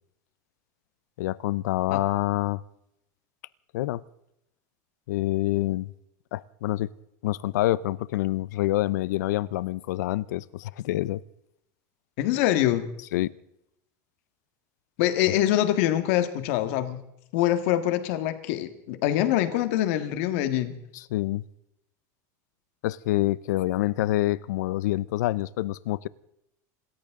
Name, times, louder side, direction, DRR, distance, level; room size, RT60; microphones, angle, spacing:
voice 1, 1.2-2.6 3.7-4.0 5.1-5.9 6.3-6.9 7.2-11.2 13.1-13.3 20.9-21.4 22.8-26.1, left 16 dB, 85° left, 0.6 m, -27 dB
voice 2, 12.2-12.8 15.0-17.0 17.3-20.7, left 13 dB, 50° left, 1.7 m, -24 dB
27.0 x 14.0 x 3.7 m
supercardioid pair, 180°, 9 cm